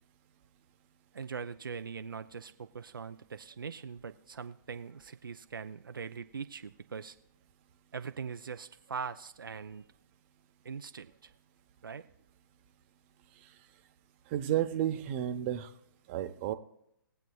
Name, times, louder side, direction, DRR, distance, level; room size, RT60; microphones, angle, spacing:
voice 1, 1.1-7.2 7.9-9.8 10.6-11.3 11.8-12.0, right 6 dB, 75° right, 8 dB, 0.5 m, -41 dB
voice 2, 14.3-15.7 16.1-16.5, right 11 dB, 35° right, 8 dB, 0.8 m, -31 dB
20.0 x 7.9 x 2.3 m, 0.78 s
figure-of-eight pair, 125°, 11 cm